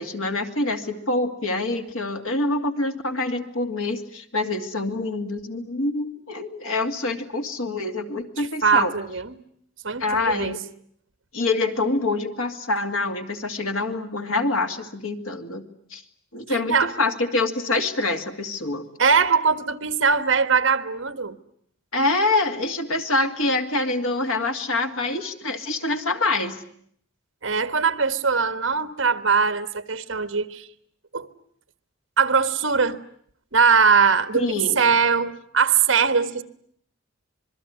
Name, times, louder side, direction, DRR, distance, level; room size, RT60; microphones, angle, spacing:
voice 1, 0.0-8.9 10.0-10.6 11.3-15.6 15.9-16.0 16.3-18.9 21.9-26.6 34.3-34.8, left 2 dB, 90° left, 2.4 m, -25 dB
voice 2, 8.4-9.4 9.8-10.5 16.5-16.9 19.0-21.3 27.4-30.7 31.1-31.3 32.2-33.0 33.5-36.4, right 5 dB, 65° right, 1.5 m, -21 dB
26.0 x 22.0 x 9.5 m
head